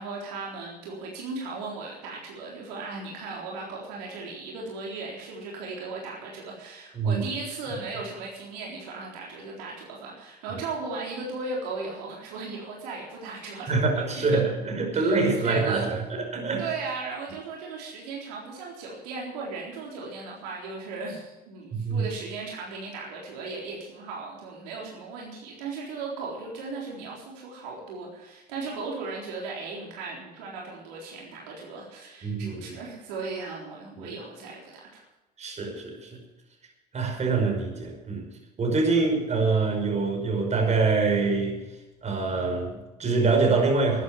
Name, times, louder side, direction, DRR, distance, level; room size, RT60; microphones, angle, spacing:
voice 1, 0.0-14.3 14.9-15.9 16.6-35.0, right 3 dB, 75° right, -2 dB, 4.0 m, -37 dB
voice 2, 13.7-16.7 21.7-22.0 32.2-32.8 34.0-34.2 35.4-36.1 36.9-38.3 38.6-41.6 42.0-44.0, right 3 dB, 35° right, 3 dB, 5.5 m, -25 dB
13.5 x 9.6 x 8.7 m, 1.1 s
hypercardioid pair, 75°, 21 cm